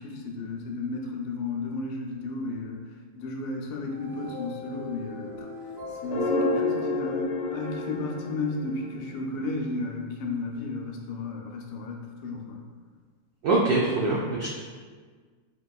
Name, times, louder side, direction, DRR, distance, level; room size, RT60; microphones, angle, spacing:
voice 1, 0.0-2.8 3.2-5.5 6.0-12.6, left 3 dB, 85° left, 0 dB, 1.5 m, -33 dB
sound 1, 3.8-8.1, left 3 dB, 65° right, 1.7 m, -42 dB
sound 2, 6.0-9.4, left 2 dB, 55° left, 0.9 m, -29 dB
voice 2, 13.4-14.5, right 2 dB, 90° right, -4 dB, 0.8 m, -23 dB
5.2 x 2.9 x 2.3 m, 1.5 s
omnidirectional pair, 2.3 m